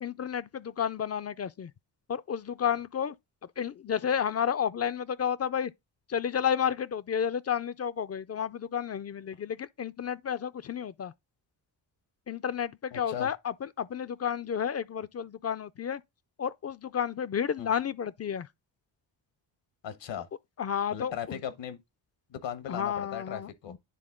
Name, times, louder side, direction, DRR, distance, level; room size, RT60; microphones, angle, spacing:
voice 1, 0.0-1.7 2.1-3.2 3.6-5.7 6.1-11.1 12.3-16.0 16.4-18.5 20.6-21.4 22.7-23.8, left 8 dB, 35° left, 0.4 m, -31 dB
voice 2, 12.9-13.3 17.6-17.7 19.8-20.3 20.9-21.8 22.3-23.7, left 9 dB, 75° left, 1.2 m, -37 dB
10.0 x 3.7 x 3.6 m
cardioid pair, 80°, 45 cm